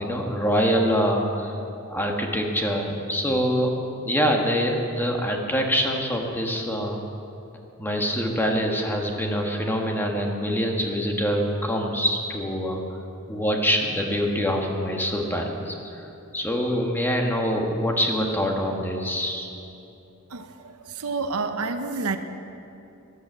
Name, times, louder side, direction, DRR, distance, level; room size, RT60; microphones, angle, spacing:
voice 1, 0.0-1.6 1.9-3.7 4.0-7.0 7.8-12.8 13.3-16.1 16.3-19.5, equal, 10° left, 1 dB, 1.5 m, -25 dB
voice 2, 21.0-22.2, right 4 dB, 75° right, 8 dB, 0.8 m, -28 dB
13.0 x 11.0 x 7.9 m, 2.7 s
head